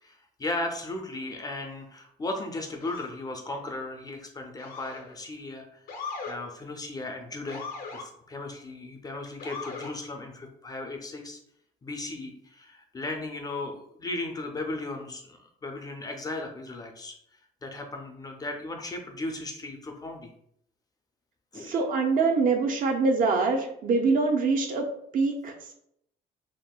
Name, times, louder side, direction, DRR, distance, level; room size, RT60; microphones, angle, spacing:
voice 1, 0.0-5.8 6.3-7.7 7.9-11.4 11.8-17.2 17.6-20.3 21.5-21.8, left 2 dB, 20° left, 3 dB, 0.4 m, -36 dB
Motor vehicle (road) / Siren, 2.8-3.2 4.6-5.1 5.9-6.4 7.5-8.1 9.4-9.9, left 4 dB, 60° left, 0.7 m, -38 dB
voice 2, 21.6-24.8 25.1-25.7, right 4 dB, 55° right, 3 dB, 0.6 m, -24 dB
3.5 x 2.1 x 2.2 m, 0.71 s
cardioid pair, 110°, 17 cm